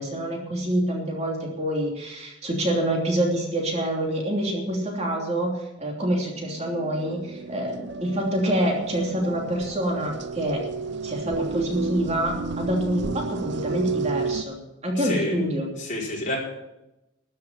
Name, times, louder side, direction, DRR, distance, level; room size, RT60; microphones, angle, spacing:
voice 1, 0.0-5.5 5.8-10.6 11.0-14.6 14.8-15.7, right 1 dB, 35° right, -1 dB, 3.1 m, -26 dB
sound 1, 6.4-14.4, right 4 dB, 65° right, 0.6 m, -32 dB
voice 2, 15.0-15.4 15.8-16.4, left 1 dB, 40° left, -3 dB, 4.7 m, -28 dB
13.5 x 7.6 x 9.1 m, 0.92 s
head